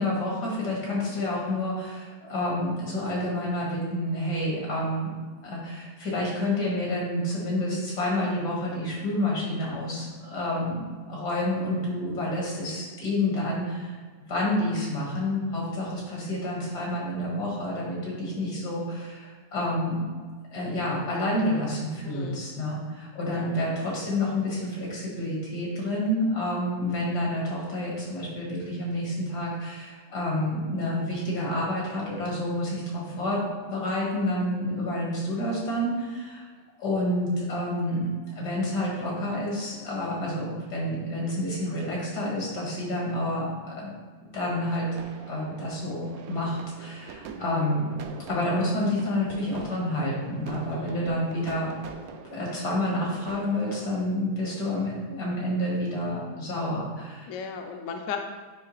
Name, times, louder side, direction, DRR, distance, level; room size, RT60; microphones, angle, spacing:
voice 1, 0.0-5.1 5.4-13.9 14.3-20.1 20.5-33.4 33.7-36.4 36.8-38.1 38.4-43.9 44.2-44.9 45.3-47.9 48.3-51.7 52.3-57.3, left 1 dB, 85° left, -4 dB, 2.4 m, -29 dB
voice 2, 22.0-22.5 23.3-23.6 50.7-51.1 57.3-58.2, left 6 dB, 65° left, 4 dB, 0.9 m, -36 dB
sound 1, 44.9-53.9, right 5 dB, 70° right, 1.0 m, -44 dB
9.4 x 3.2 x 3.2 m, 1.5 s
omnidirectional pair, 1.7 m